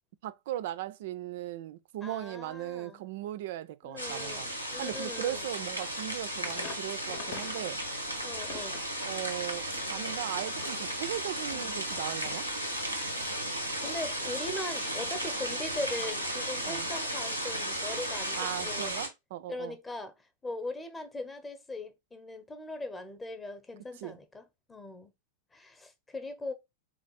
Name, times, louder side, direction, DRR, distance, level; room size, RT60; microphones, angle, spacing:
voice 1, 0.2-4.5 4.8-7.8 9.0-12.5 16.6-16.9 18.3-19.8 24.0-24.2, right 13 dB, 55° right, 0.4 m, -38 dB
voice 2, 2.0-3.0 3.8-5.5 8.2-8.8 11.5-11.8 13.1-13.3 13.8-18.9 19.5-20.1 20.4-25.1 25.5-26.5, left 2 dB, 15° left, 0.8 m, -40 dB
sound 1, 4.0-19.1, equal, 90° left, 1.2 m, -35 dB
sound 2, 6.4-7.7 8.0-13.4 13.8-14.0, left 5 dB, 50° left, 0.8 m, -46 dB
4.1 x 2.9 x 4.0 m
figure-of-eight pair, 90°, 0 cm